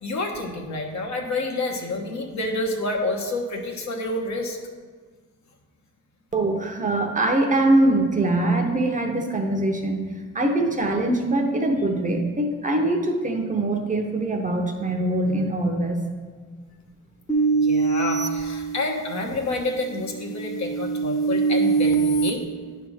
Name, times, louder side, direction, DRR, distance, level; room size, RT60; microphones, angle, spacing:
voice 1, 0.0-4.6 10.6-10.7 17.6-22.5, left 2 dB, 65° left, 2 dB, 1.2 m, -29 dB
voice 2, 6.3-10.0 10.3-16.1, right 2 dB, 25° right, 3 dB, 0.8 m, -23 dB
sound 1, 17.3-19.2 19.8-22.3, right 4 dB, 10° left, 0.9 m, -23 dB
9.8 x 3.5 x 6.2 m, 1.5 s
cardioid pair, 120°, 30 cm